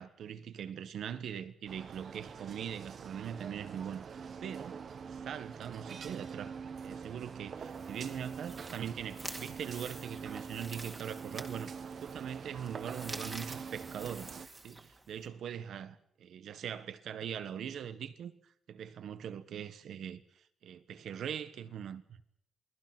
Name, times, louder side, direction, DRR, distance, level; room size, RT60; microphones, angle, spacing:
voice 1, 0.0-4.8 5.1-18.3 18.7-20.2 20.6-22.2, right 8 dB, 65° right, 1.4 m, -41 dB
sound 1, 1.7-14.5, right 6 dB, 40° right, 1.1 m, -45 dB
sound 2, 7.6-15.3, right 2 dB, 15° right, 2.1 m, -48 dB
28.0 x 19.5 x 6.1 m
wide cardioid pair, 170°, 0 cm